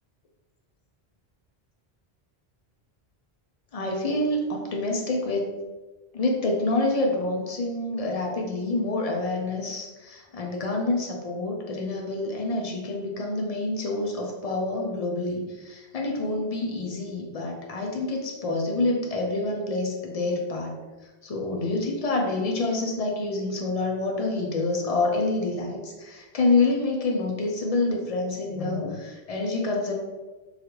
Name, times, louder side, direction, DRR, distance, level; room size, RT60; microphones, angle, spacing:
voice 1, 3.7-5.5 6.1-20.8 21.2-29.9, left 2 dB, 50° left, 0 dB, 0.4 m, -27 dB
3.2 x 2.4 x 2.9 m, 1.2 s
omnidirectional pair, 1.0 m